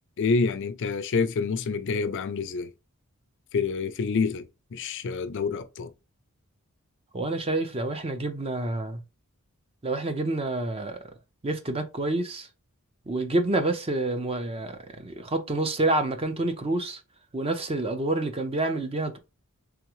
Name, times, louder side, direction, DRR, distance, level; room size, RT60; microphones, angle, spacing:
voice 1, 0.2-2.7 3.5-5.9, left 4 dB, 55° left, 0.4 m, -27 dB
voice 2, 7.1-9.0 9.8-11.0 11.4-12.5 13.1-17.0 17.3-19.2, right 2 dB, 25° right, 0.5 m, -28 dB
3.6 x 3.4 x 3.0 m
head